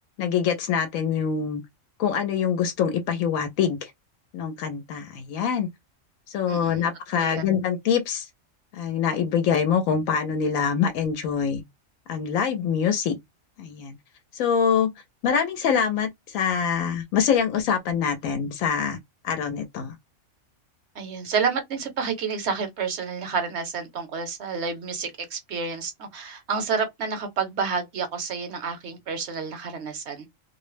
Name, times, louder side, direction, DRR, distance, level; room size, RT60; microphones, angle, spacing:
voice 1, 0.2-1.6 2.0-3.9 4.3-5.7 6.3-8.3 8.7-11.6 12.1-13.2 13.6-13.9 14.3-14.9 15.2-19.0 19.2-19.9, left 7 dB, 85° left, 1.0 m, -24 dB
voice 2, 6.5-6.8 7.2-7.4 20.9-30.3, right 5 dB, 60° right, 1.0 m, -29 dB
2.5 x 2.0 x 3.1 m
omnidirectional pair, 1.4 m